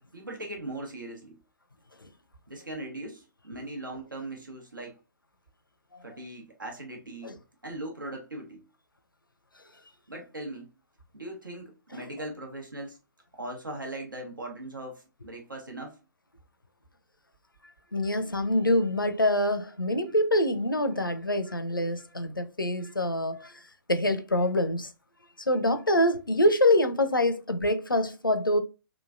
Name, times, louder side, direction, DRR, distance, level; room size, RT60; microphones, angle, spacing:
voice 1, 0.1-1.4 2.5-5.0 6.0-8.7 10.1-10.7 11.1-13.0 13.3-16.0, right 1 dB, 75° right, 1.1 m, -39 dB
voice 2, 17.9-23.6 23.9-24.9 25.5-28.6, left 1 dB, 85° left, 0.5 m, -25 dB
3.0 x 2.4 x 2.4 m
figure-of-eight pair, 130°, 11 cm